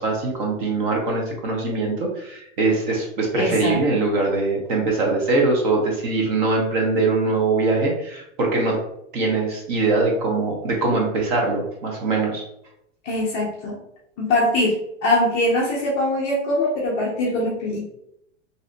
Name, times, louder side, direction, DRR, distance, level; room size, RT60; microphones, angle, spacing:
voice 1, 0.0-8.8 9.1-12.4, right 3 dB, 40° right, -1 dB, 1.0 m, -22 dB
voice 2, 3.4-4.0 13.0-13.8 14.2-17.8, left 1 dB, 25° left, -4 dB, 0.4 m, -22 dB
3.1 x 2.8 x 2.6 m, 0.76 s
supercardioid pair, 155°, 38 cm